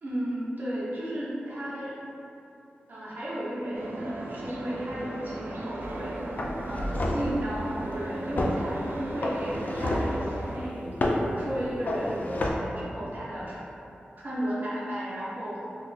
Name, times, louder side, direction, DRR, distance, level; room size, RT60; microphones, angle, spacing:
voice 1, 0.0-2.0 2.9-6.2 6.6-13.6 14.2-15.6, equal, 55° right, -8 dB, 0.9 m, -34 dB
sound 1, 3.7-10.6, right 1 dB, 75° right, 0.4 m, -37 dB
sound 2, 5.8-6.0 6.4-7.4 8.4-8.6 9.2-10.2 11.0-11.3 11.9-12.5, left 1 dB, 50° left, 0.3 m, -29 dB
4.0 x 2.6 x 2.5 m, 2.8 s
wide cardioid pair, 115°, 4 cm